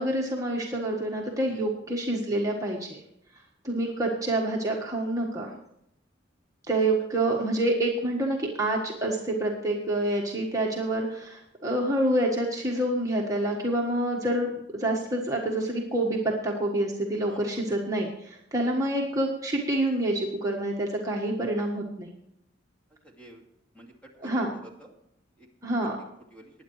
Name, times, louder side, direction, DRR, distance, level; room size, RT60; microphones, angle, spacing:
voice 1, 0.0-3.0 3.6-5.6 6.7-16.2 16.4-22.1 24.2-24.5 25.6-26.0, right 1 dB, 20° right, -2 dB, 1.5 m, -27 dB
voice 2, 17.3-17.6 18.6-18.9 23.0-23.4 23.7-25.0 25.4-25.5 26.3-26.5, right 1 dB, 5° left, 0 dB, 2.4 m, -49 dB
20.0 x 9.9 x 3.2 m, 0.77 s
head